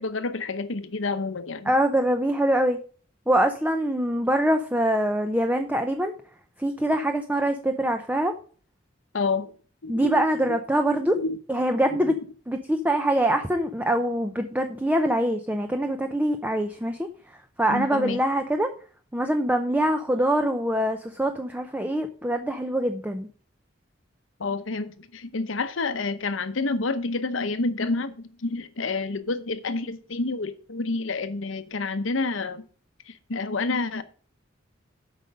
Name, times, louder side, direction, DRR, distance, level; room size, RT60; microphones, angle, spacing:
voice 1, 0.0-1.7 9.1-9.5 9.8-10.6 11.2-11.4 12.0-12.2 17.7-18.2 24.4-32.6 33.1-34.0, left 3 dB, 70° left, 0.8 m, -29 dB
voice 2, 1.7-2.8 3.3-6.1 6.6-8.3 9.9-11.2 11.5-12.1 12.5-18.7 19.1-23.3, right 1 dB, 10° right, 0.6 m, -24 dB
8.1 x 5.3 x 6.3 m
head